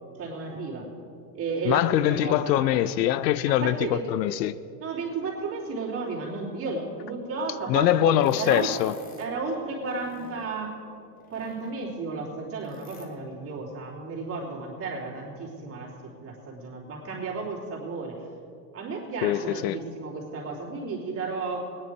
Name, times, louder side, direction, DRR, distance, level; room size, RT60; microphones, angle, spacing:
voice 1, 0.2-0.9 1.3-2.9 3.5-4.0 4.8-8.7 9.2-10.8 11.3-18.2 18.7-21.7, right 3 dB, 25° right, 3.0 m, -33 dB
voice 2, 1.7-3.8 4.1-4.6 7.7-8.9 19.2-19.8, left 12 dB, 80° left, 0.6 m, -23 dB
sound 1, 8.2-9.4 9.8-10.6 11.2-12.0 12.6-13.1, left 3 dB, 15° left, 1.2 m, -49 dB
17.5 x 10.0 x 4.7 m
supercardioid pair, 135°, 50 cm